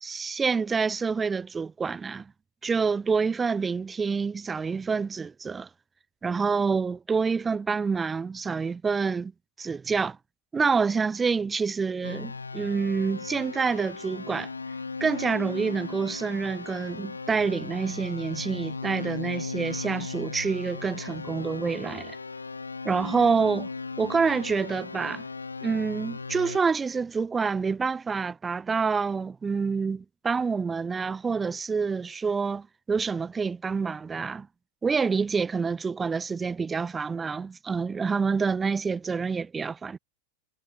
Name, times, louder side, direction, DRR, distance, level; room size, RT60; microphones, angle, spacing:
voice 1, 0.0-2.3 2.6-5.7 6.2-9.3 9.6-10.2 10.5-14.5 15.0-22.2 22.8-23.7 24.0-25.2 25.6-34.5 34.8-40.0, right 5 dB, 15° right, 0.3 m, -27 dB
sound 1, 12.0-26.6, left 4 dB, 80° left, 2.7 m, -37 dB
figure-of-eight pair, 90°, 0 cm